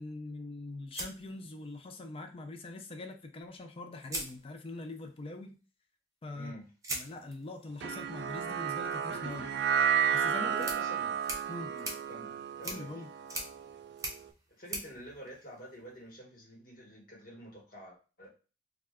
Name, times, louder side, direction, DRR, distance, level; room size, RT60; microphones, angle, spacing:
voice 1, 0.0-5.6 6.2-6.6 6.9-9.5 10.1-10.6 11.5-11.7 12.6-13.1, left 2 dB, 30° left, 0.4 m, -43 dB
sound 1, 0.9-2.1 3.4-3.5 4.0-5.0 6.8-16.0, right 2 dB, 15° right, 0.7 m, -44 dB
voice 2, 6.3-6.7 10.5-11.2 11.6-12.9 14.5-18.3, equal, 50° left, 1.2 m, -48 dB
sound 2, 7.8-14.2, right 8 dB, 65° right, 0.3 m, -32 dB
2.4 x 2.2 x 3.5 m
head